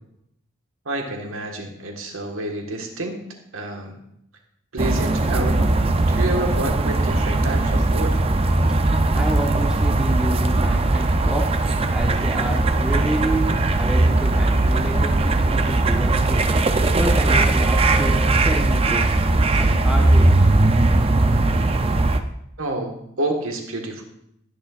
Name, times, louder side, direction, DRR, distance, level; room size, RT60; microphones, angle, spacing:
voice 1, 0.8-3.2 3.5-4.0 4.7-5.7 6.1-8.2 22.6-24.0, right 1 dB, 80° right, 2 dB, 1.5 m, -28 dB
sound 1, 4.8-22.2, right 2 dB, 30° right, 0.5 m, -19 dB
voice 2, 9.1-11.5 11.9-16.4 17.0-19.0 19.6-20.5, right 1 dB, 5° right, 0 dB, 1.1 m, -29 dB
19.5 x 6.5 x 2.5 m, 0.75 s
head